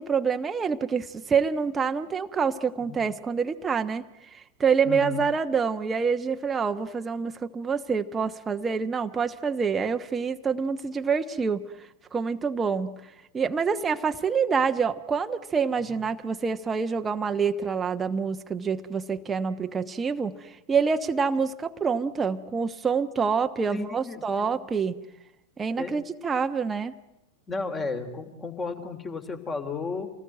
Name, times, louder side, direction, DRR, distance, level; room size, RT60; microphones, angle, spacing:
voice 1, 0.0-4.0 4.3-11.6 12.1-12.9 13.3-25.0 25.6-26.9, right 5 dB, 15° right, 7 dB, 1.1 m, -26 dB
voice 2, 4.8-5.2 15.9-16.0 23.7-24.5 25.8-26.0 27.5-30.1, left 4 dB, 20° left, 7 dB, 3.3 m, -33 dB
27.5 x 19.5 x 9.1 m, 0.92 s
figure-of-eight pair, 90°, 0 cm